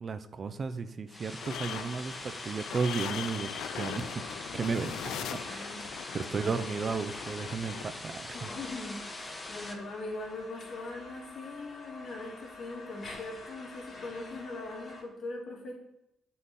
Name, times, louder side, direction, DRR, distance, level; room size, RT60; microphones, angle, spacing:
voice 1, 0.0-4.1 4.5-4.9 5.4-5.7 6.1-8.5, right 5 dB, 40° right, 11 dB, 0.5 m, -34 dB
sound 1, 1.1-9.7, left 2 dB, 20° left, 1.1 m, -43 dB
sound 2, 1.4-7.8, left 10 dB, 85° left, 0.4 m, -41 dB
sound 3, 1.5-15.0, left 3 dB, 45° left, 2.6 m, -48 dB
voice 2, 5.1-5.9 6.1-6.5 8.3-15.8, left 2 dB, 60° left, -1 dB, 2.4 m, -41 dB
7.8 x 5.7 x 4.1 m, 0.86 s
cardioid pair, 90°, 0 cm